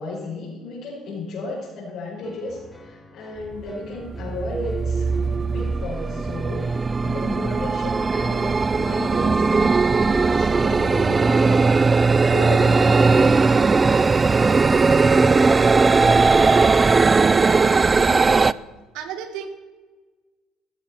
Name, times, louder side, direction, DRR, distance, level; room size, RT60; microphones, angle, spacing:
voice 1, 0.0-5.1 5.5-11.9 12.3-13.4, left 2 dB, 65° left, -8 dB, 5.3 m, -33 dB
sound 1, 2.2-15.0, left 1 dB, 15° left, 2.2 m, -48 dB
sound 2, 3.5-3.7 4.1-18.5, right 4 dB, 30° right, 0.5 m, -18 dB
voice 2, 17.8-18.6 18.9-19.5, right 8 dB, 80° right, 8 dB, 1.9 m, -34 dB
16.5 x 13.5 x 4.4 m, 1.3 s
supercardioid pair, 70°, 0 cm